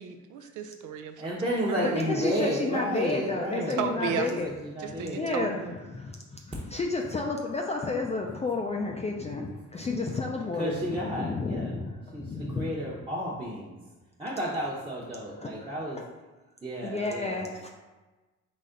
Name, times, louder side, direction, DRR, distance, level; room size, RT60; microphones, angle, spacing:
voice 1, 0.0-1.3 1.7-2.5 2.8-3.0 3.5-4.3 4.8-5.7, right 8 dB, 80° right, 7 dB, 0.6 m, -35 dB
voice 2, 1.2-5.3 10.5-11.7 12.1-13.8 14.2-16.0 16.6-17.5, equal, 15° right, -7 dB, 0.9 m, -32 dB
voice 3, 1.8-4.5 4.9-10.8 11.1-12.7 15.4-15.7 16.0-16.1 16.8-17.7, left 3 dB, 20° left, 0 dB, 0.4 m, -31 dB
4.1 x 3.3 x 3.8 m, 1.2 s
cardioid pair, 90°, 30 cm